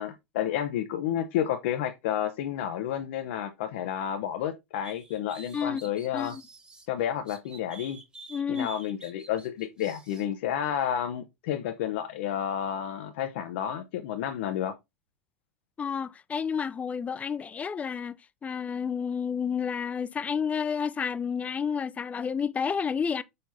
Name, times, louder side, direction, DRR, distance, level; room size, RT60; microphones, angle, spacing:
voice 1, 0.0-6.3 6.9-8.0 8.5-14.7, left 10 dB, 60° left, 0.7 m, -31 dB
sound 1, 4.8-6.9 7.3-10.3, right 3 dB, 15° right, 1.5 m, -48 dB
voice 2, 8.3-8.7 15.8-18.2 18.4-23.2, left 6 dB, 20° left, 0.4 m, -30 dB
6.6 x 5.6 x 2.7 m
figure-of-eight pair, 85°, 7 cm